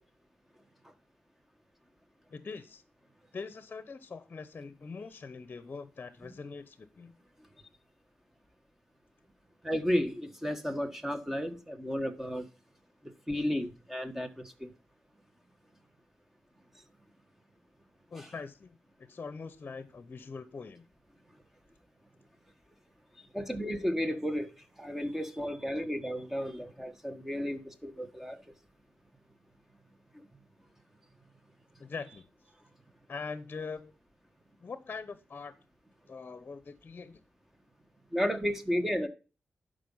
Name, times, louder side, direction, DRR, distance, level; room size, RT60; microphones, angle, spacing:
voice 1, 2.3-2.8 3.3-7.1 18.1-20.8 31.8-32.2 33.1-33.9 34.6-35.5 36.1-37.2, left 4 dB, 45° left, 13 dB, 0.9 m, -43 dB
voice 2, 9.6-12.5 13.3-14.7 18.2-18.3 23.3-28.4 30.1-30.2 38.1-39.1, equal, 5° right, 7 dB, 1.6 m, -33 dB
11.5 x 5.3 x 5.6 m, 0.34 s
cardioid pair, 85°, 4 cm